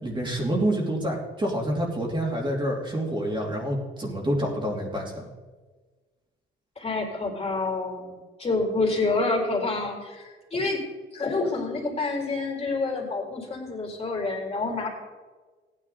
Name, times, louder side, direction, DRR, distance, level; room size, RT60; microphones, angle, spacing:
voice 1, 0.0-5.2, right 1 dB, 25° right, -2 dB, 2.9 m, -27 dB
voice 2, 6.8-10.8 11.1-14.9, left 3 dB, 30° left, 0 dB, 3.8 m, -28 dB
15.0 x 9.7 x 4.2 m, 1.4 s
cardioid pair, 90°, 20 cm